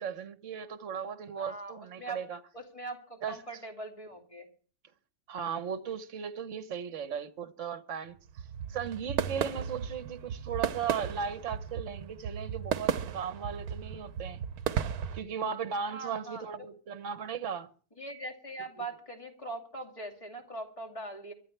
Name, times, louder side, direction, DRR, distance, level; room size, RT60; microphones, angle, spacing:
voice 1, 0.0-2.4 3.2-3.4 5.3-8.2 8.7-14.4 15.1-17.7, right 7 dB, 55° right, 1.4 m, -36 dB
voice 2, 1.4-2.2 2.5-4.5 15.9-16.7 18.0-21.3, right 2 dB, 20° left, 2.6 m, -41 dB
sound 1, 8.1-15.2, right 8 dB, 75° right, 1.3 m, -35 dB
24.0 x 12.5 x 3.3 m
omnidirectional pair, 1.6 m